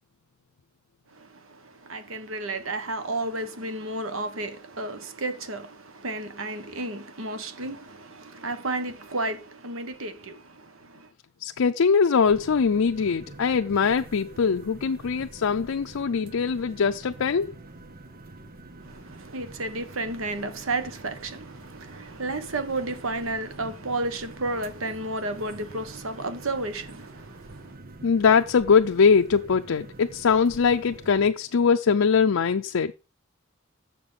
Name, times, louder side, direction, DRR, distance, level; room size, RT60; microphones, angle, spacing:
voice 1, 1.1-11.1 18.8-27.7, right 2 dB, 90° right, 1.3 m, -32 dB
voice 2, 11.4-17.5 28.0-32.9, left 5 dB, 85° left, 0.5 m, -22 dB
sound 1, 12.2-31.3, right 2 dB, 50° right, 1.3 m, -46 dB
7.1 x 6.9 x 5.6 m
head